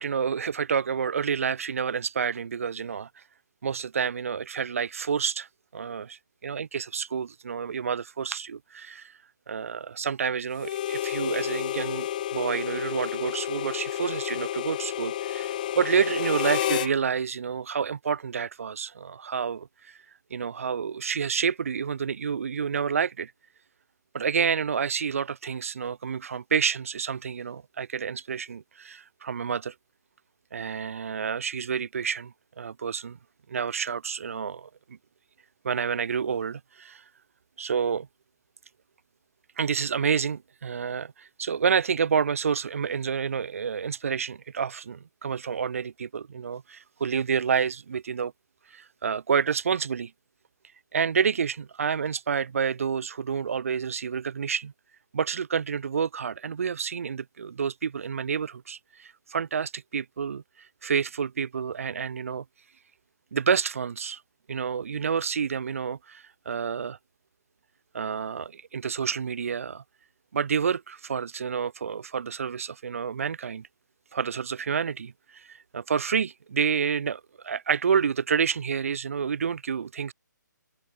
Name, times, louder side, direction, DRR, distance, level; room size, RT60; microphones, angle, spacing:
voice 1, 0.0-3.1 3.6-5.5 5.7-9.1 9.5-20.0 20.3-23.3 24.1-29.7 30.5-33.2 33.5-35.0 35.6-37.0 37.6-38.1 39.6-48.3 48.7-50.1 50.9-54.7 55.1-62.4 63.3-64.2 64.5-67.0 67.9-69.8 70.3-73.7 74.1-80.1, right 6 dB, 45° right, 3.6 m, -29 dB
Harmonica, 10.6-16.9, left 12 dB, 25° left, 2.6 m, -30 dB
open air
hypercardioid pair, 175°, 10 cm